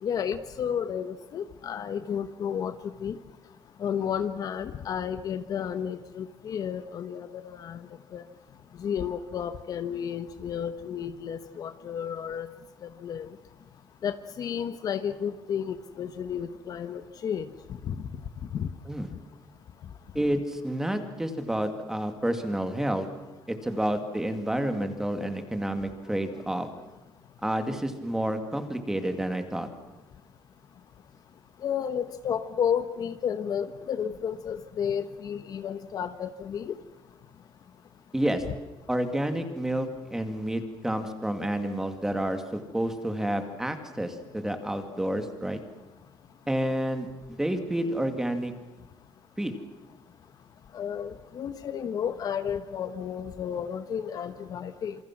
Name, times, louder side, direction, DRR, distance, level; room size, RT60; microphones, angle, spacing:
voice 1, 0.0-2.7 3.0-3.2 3.8-7.9 8.1-8.2 8.8-12.5 13.0-13.3 14.0-17.5 17.8-18.1 18.5-18.7 31.6-36.7 50.7-55.0, left 8 dB, 45° left, 10 dB, 1.2 m, -32 dB
voice 2, 20.1-23.1 23.5-26.7 27.4-29.7 38.1-38.4 38.9-45.6 46.5-48.5 49.4-49.6, right 1 dB, 5° right, 7 dB, 2.3 m, -29 dB
27.5 x 26.5 x 6.1 m, 1.1 s
cardioid pair, 170°, 9 cm